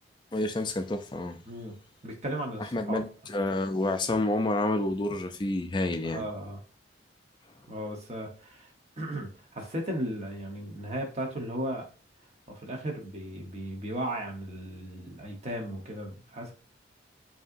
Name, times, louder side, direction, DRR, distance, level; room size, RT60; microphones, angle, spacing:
voice 1, 0.3-1.4 2.7-6.3, left 2 dB, 25° left, 7 dB, 0.4 m, -29 dB
voice 2, 2.0-3.0 6.0-6.6 7.7-8.7 9.0-11.8 12.5-16.5, right 1 dB, 35° right, 1 dB, 1.0 m, -36 dB
5.3 x 2.8 x 2.6 m, 0.37 s
head